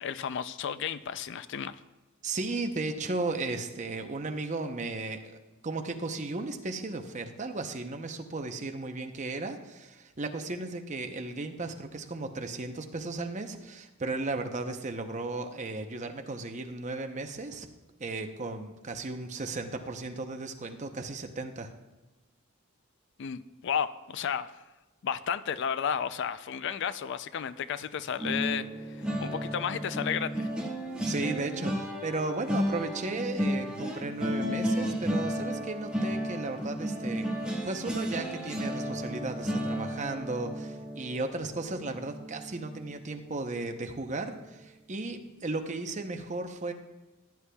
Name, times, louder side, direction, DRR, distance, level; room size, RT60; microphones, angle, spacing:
voice 1, 0.0-1.8 23.2-24.6 25.0-30.5, left 7 dB, 55° left, 14 dB, 0.4 m, -33 dB
voice 2, 2.2-5.4 5.6-17.7 18.0-21.7 31.1-37.3 37.6-46.7, right 3 dB, 35° right, 6 dB, 0.7 m, -35 dB
sound 1, 28.2-43.3 43.7-44.0 44.3-44.5, equal, 5° right, 1.4 m, -33 dB
15.0 x 9.8 x 2.3 m, 1.1 s
head